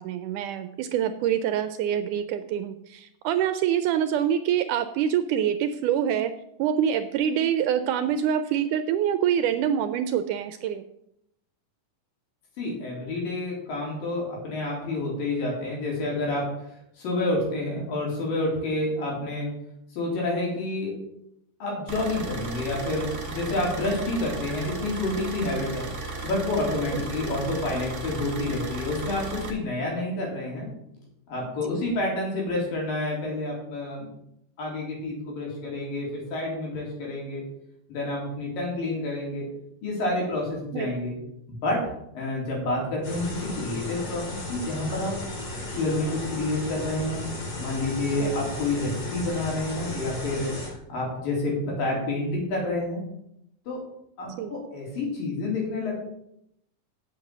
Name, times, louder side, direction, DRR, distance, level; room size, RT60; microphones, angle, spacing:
voice 1, 0.0-6.3 6.6-10.8 31.7-31.8 40.7-40.9 48.2-48.3 54.4-54.6, right 9 dB, 80° right, 10 dB, 1.9 m, -25 dB
voice 2, 12.6-16.4 17.0-19.5 19.9-20.9 21.6-25.9 26.2-30.7 31.3-34.1 34.6-37.4 37.9-39.5 39.8-41.1 41.5-41.8 42.1-45.1 45.5-53.0 53.7-53.8 54.2-56.1, left 2 dB, 90° left, -3 dB, 5.3 m, -29 dB
sound 1, 21.9-29.5, right 3 dB, 45° right, 0.9 m, -35 dB
sound 2, 43.0-50.7, left 1 dB, 50° left, 5.2 m, -35 dB
7.9 x 7.6 x 7.5 m, 0.77 s
omnidirectional pair, 3.9 m